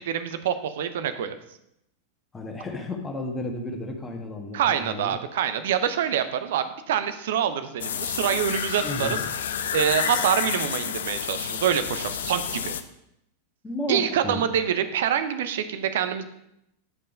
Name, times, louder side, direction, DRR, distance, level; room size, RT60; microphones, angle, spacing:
voice 1, 0.0-1.3 4.5-9.2 9.7-12.7 13.9-16.2, right 9 dB, 55° right, 10 dB, 0.7 m, -26 dB
voice 2, 2.3-5.1 8.8-9.2 13.6-14.4, left 2 dB, 15° left, 2 dB, 1.6 m, -33 dB
sound 1, 7.8-12.8, left 8 dB, 60° left, 0.6 m, -29 dB
9.5 x 5.4 x 5.2 m, 0.79 s
figure-of-eight pair, 90°, 0 cm